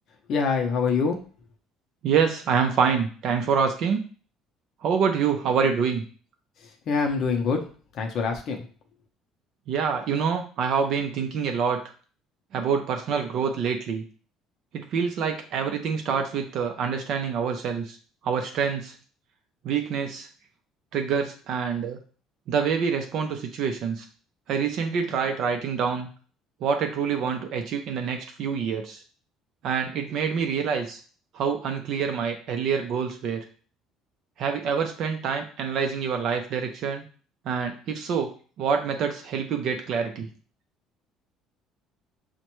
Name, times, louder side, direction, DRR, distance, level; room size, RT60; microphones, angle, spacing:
voice 1, 0.3-1.2 6.9-7.6 7.9-8.6, left 5 dB, 45° left, 2 dB, 0.6 m, -24 dB
voice 2, 2.0-4.0 4.8-6.0 9.7-11.8 12.5-14.0 14.7-18.0 18.2-18.9 19.6-20.3 20.9-22.0 22.5-24.1 24.5-26.1 26.6-29.0 29.6-31.0 31.3-33.4 34.4-37.0 37.5-38.3 38.6-40.3, right 6 dB, 50° right, 5 dB, 0.4 m, -26 dB
6.3 x 2.1 x 3.0 m, 0.40 s
cardioid pair, 170°, 0 cm